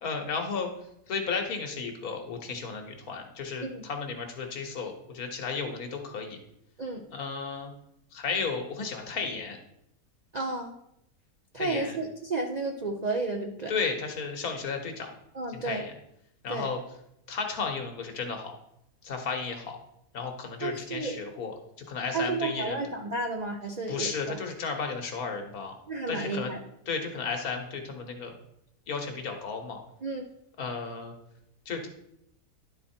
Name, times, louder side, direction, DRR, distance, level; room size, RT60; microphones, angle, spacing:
voice 1, 0.0-0.7 1.1-6.4 7.1-7.7 8.1-9.6 11.5-12.0 13.7-15.1 15.5-15.9 16.4-16.8 17.3-18.5 19.0-19.8 20.1-21.5 21.9-22.8 23.9-25.7 26.1-26.5 26.9-28.3 28.9-29.8 30.6-31.1 31.6-31.9, left 5 dB, 65° left, 4 dB, 1.6 m, -33 dB
voice 2, 10.3-10.7 11.5-13.7 15.3-15.8 16.5-16.7 20.6-21.1 22.1-24.4 25.9-26.6 30.0-30.3, right 3 dB, 50° right, 2 dB, 0.5 m, -32 dB
11.0 x 4.2 x 4.3 m, 0.78 s
omnidirectional pair, 1.7 m